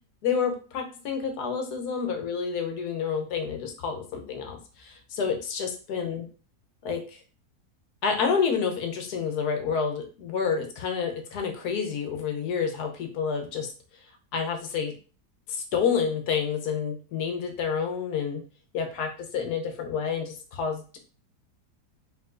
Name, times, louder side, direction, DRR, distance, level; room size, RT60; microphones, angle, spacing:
voice 1, 0.2-6.2 6.8-7.0 8.0-13.7 14.3-14.9 15.5-18.4 18.7-21.0, left 6 dB, 70° left, 4 dB, 1.3 m, -29 dB
4.6 x 3.6 x 2.5 m, 0.37 s
omnidirectional pair, 1.8 m